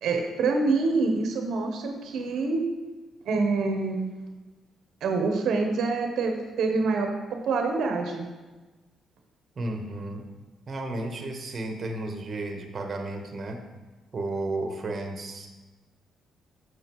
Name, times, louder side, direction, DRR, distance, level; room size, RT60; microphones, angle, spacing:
voice 1, 0.0-2.6 3.2-4.1 5.0-7.1 7.4-8.3, right 3 dB, 75° right, 3 dB, 0.8 m, -26 dB
voice 2, 9.6-10.3 10.7-13.6 14.1-15.5, right 2 dB, 40° right, 4 dB, 1.0 m, -33 dB
7.1 x 6.3 x 3.0 m, 1.2 s
cardioid pair, 90°, 0 cm